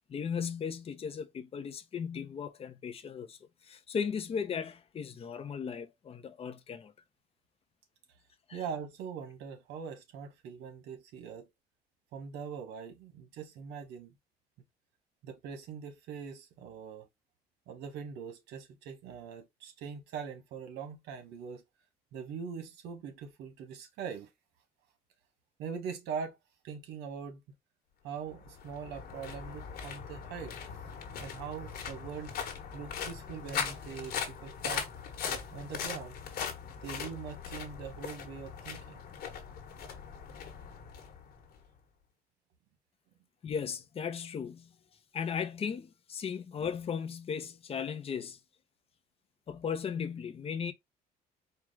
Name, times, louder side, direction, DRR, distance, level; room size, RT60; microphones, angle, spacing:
voice 1, 0.1-3.4 3.6-6.9 8.5-8.6 43.4-44.7 45.1-48.4 49.5-50.7, left 7 dB, 35° left, 0.7 m, -36 dB
voice 2, 8.5-11.5 12.1-14.2 15.2-17.1 17.7-21.6 22.1-24.3 25.6-26.4 26.6-27.4 28.0-30.6 31.2-32.4 32.7-34.8 35.3-36.2 36.8-39.0, right 6 dB, 85° right, 1.4 m, -42 dB
sound 1, 28.3-41.7, left 7 dB, 65° left, 1.3 m, -40 dB
4.5 x 2.3 x 3.6 m
cardioid pair, 110°, 17 cm